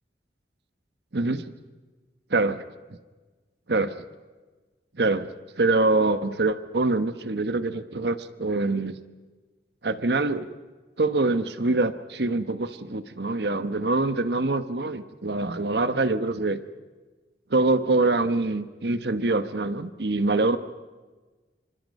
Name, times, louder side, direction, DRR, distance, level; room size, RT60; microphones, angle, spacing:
voice 1, 1.1-1.5 2.3-2.6 3.7-3.9 5.0-5.3 5.6-9.0 9.8-10.5 11.0-16.6 17.5-20.6, right 2 dB, 70° right, 11 dB, 1.1 m, -24 dB
27.5 x 25.5 x 5.4 m, 1.3 s
head